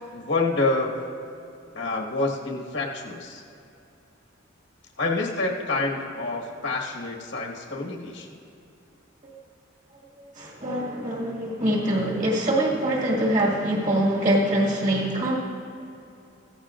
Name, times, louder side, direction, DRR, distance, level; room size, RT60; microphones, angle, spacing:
voice 1, 0.1-0.9 1.7-3.4 5.0-8.3, left 2 dB, 70° left, -1 dB, 1.5 m, -27 dB
voice 2, 10.2-15.4, right 1 dB, 40° right, -3 dB, 1.9 m, -24 dB
15.0 x 14.0 x 2.5 m, 2.7 s
head